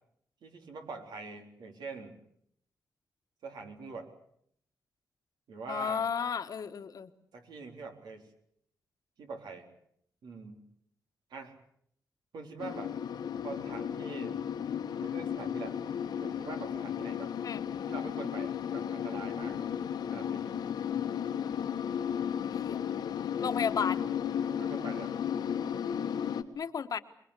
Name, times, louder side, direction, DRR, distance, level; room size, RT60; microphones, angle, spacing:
voice 1, 0.4-2.2 3.4-4.1 5.5-6.1 7.3-8.3 9.2-9.7 10.2-10.7 11.3-11.6 12.3-13.0 13.4-14.4 15.0-15.8 16.2-17.3 17.9-19.7 20.1-20.6 24.6-25.2, right 4 dB, 85° right, 4 dB, 3.9 m, -44 dB
voice 2, 5.7-7.1 17.4-17.6 22.5-22.9 23.4-24.1 26.5-27.0, left 6 dB, 60° left, 9 dB, 1.4 m, -33 dB
sound 1, 12.6-26.4, left 8 dB, 90° left, 1.6 m, -34 dB
25.0 x 22.0 x 8.3 m, 0.69 s
cardioid pair, 105°, 7 cm